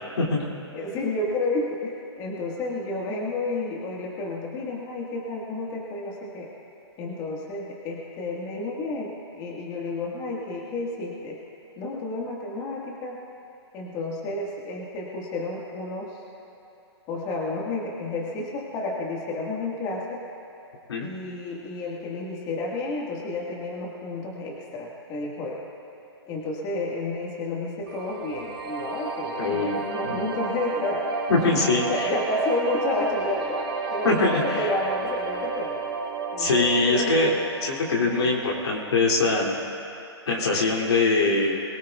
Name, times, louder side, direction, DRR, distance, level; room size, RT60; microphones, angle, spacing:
voice 1, 0.7-6.5 7.0-11.4 11.8-13.2 13.7-16.2 17.1-20.2 21.0-25.6 26.3-31.2 31.5-35.8 36.3-37.2 38.0-38.3, left 2 dB, 25° left, -2 dB, 1.7 m, -31 dB
sound 1, 27.9-38.9, right 4 dB, 60° right, 3.4 m, -33 dB
voice 2, 29.4-30.2 31.3-32.1 34.0-34.7 36.4-37.3 37.6-39.6 40.3-41.6, left 3 dB, 70° left, -3 dB, 2.8 m, -23 dB
23.0 x 17.0 x 2.4 m, 2.9 s
hypercardioid pair, 135°, 14 cm